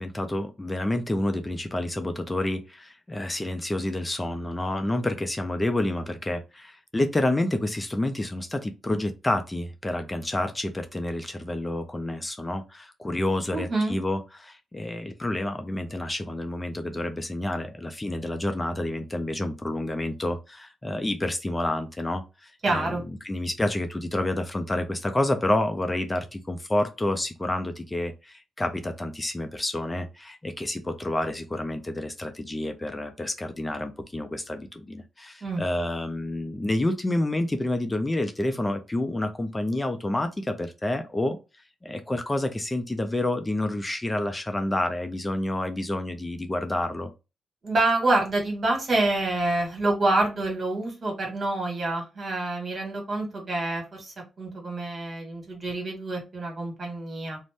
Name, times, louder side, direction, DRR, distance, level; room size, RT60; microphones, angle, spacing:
voice 1, 0.0-23.0 23.2-41.4 41.8-47.1, left 1 dB, 20° left, 0.5 m, -29 dB
voice 2, 13.5-13.9 22.6-23.0 35.4-35.6 47.6-57.4, right 2 dB, 50° right, 1.5 m, -27 dB
2.5 x 2.1 x 3.4 m
cardioid pair, 60°, 0 cm